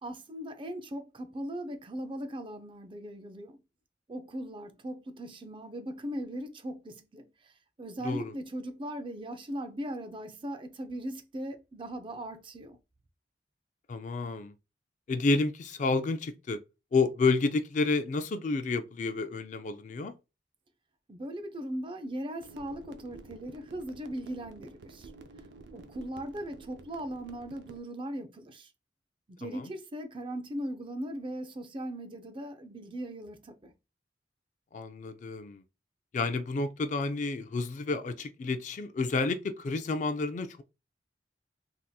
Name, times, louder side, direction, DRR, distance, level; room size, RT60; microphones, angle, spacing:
voice 1, 0.0-3.6 4.1-7.5 7.8-12.8 21.1-25.1 25.7-28.7 29.3-33.7, right 1 dB, 30° right, 0.5 m, -39 dB
voice 2, 13.9-14.5 15.1-16.6 16.9-20.1 29.4-29.7 34.7-35.6 36.1-40.6, left 3 dB, 45° left, 0.3 m, -30 dB
sound 1, 22.4-27.8, right 3 dB, 80° right, 0.5 m, -51 dB
3.5 x 2.8 x 2.3 m
head